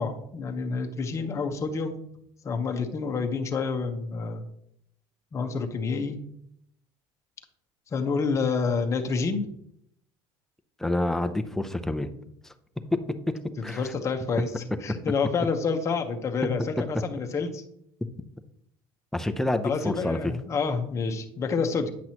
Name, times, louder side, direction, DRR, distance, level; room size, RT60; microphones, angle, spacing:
voice 1, 0.0-2.0 2.4-4.4 5.3-6.2 7.9-9.4 13.6-14.5 14.8-17.6 19.6-21.9, left 4 dB, 30° left, 4 dB, 1.0 m, -28 dB
voice 2, 10.8-12.1 12.4-12.5 12.9-13.9 14.9-15.0 19.1-20.3, left 1 dB, 5° left, 8 dB, 0.6 m, -28 dB
9.3 x 6.0 x 2.9 m, 0.72 s
cardioid pair, 125°, 10 cm